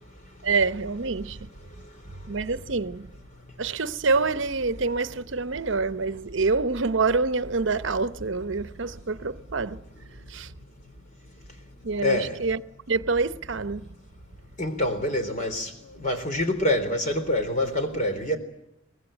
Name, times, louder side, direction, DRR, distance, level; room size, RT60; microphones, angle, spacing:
voice 1, 0.4-1.4 2.3-3.1 3.6-9.8 10.3-10.5 11.8-12.6 12.9-13.8, right 4 dB, 65° right, 0.9 m, -26 dB
voice 2, 12.0-12.4 14.6-18.4, left 1 dB, 40° left, 3.8 m, -26 dB
24.5 x 20.0 x 9.0 m
head